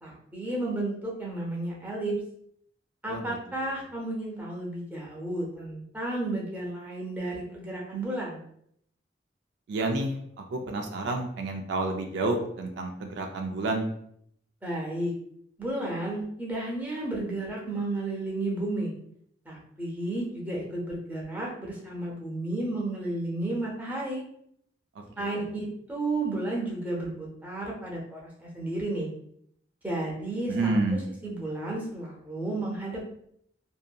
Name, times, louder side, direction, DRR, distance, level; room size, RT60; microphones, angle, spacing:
voice 1, 0.0-2.2 3.0-8.4 14.6-15.1 15.6-18.9 19.4-24.2 25.2-29.1 29.8-30.8 31.2-33.0, right 2 dB, 10° right, -4 dB, 0.7 m, -32 dB
voice 2, 9.7-13.9 25.2-25.4 30.5-31.0, right 2 dB, 65° right, 3 dB, 0.3 m, -30 dB
2.7 x 2.5 x 2.2 m, 0.70 s
head